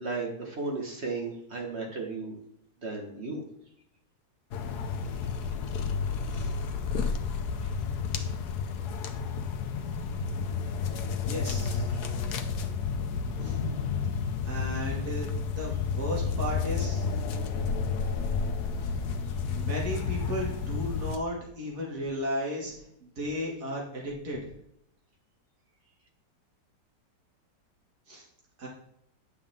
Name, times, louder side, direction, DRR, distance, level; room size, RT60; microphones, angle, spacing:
voice 1, 0.0-2.3 2.8-3.4 7.6-7.7 11.9-12.0, right 3 dB, 40° right, 1 dB, 1.7 m, -35 dB
sound 1, 4.5-21.2, left 5 dB, 70° left, 1.3 m, -31 dB
voice 2, 11.2-11.9 13.4-13.6 14.5-15.3 15.6-17.1 19.5-22.7 23.2-24.4 28.1-28.2 28.6-28.7, equal, 60° right, -4 dB, 3.0 m, -34 dB
9.9 x 7.0 x 3.7 m, 0.75 s
omnidirectional pair, 1.9 m